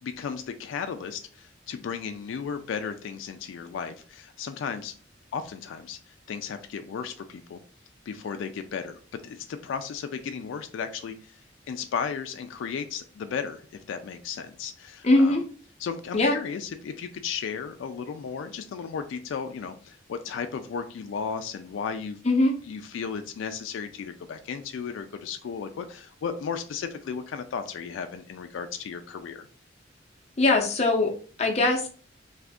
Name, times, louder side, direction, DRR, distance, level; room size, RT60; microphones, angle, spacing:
voice 1, 0.0-4.9 5.3-7.6 8.1-11.4 11.7-15.4 15.8-22.2 22.7-29.5, left 6 dB, 85° left, 8 dB, 0.3 m, -35 dB
voice 2, 15.0-15.4 16.1-16.3 22.2-22.5 30.4-31.1 31.4-31.9, left 2 dB, 35° left, 1 dB, 0.6 m, -21 dB
2.6 x 2.5 x 3.4 m, 0.42 s
head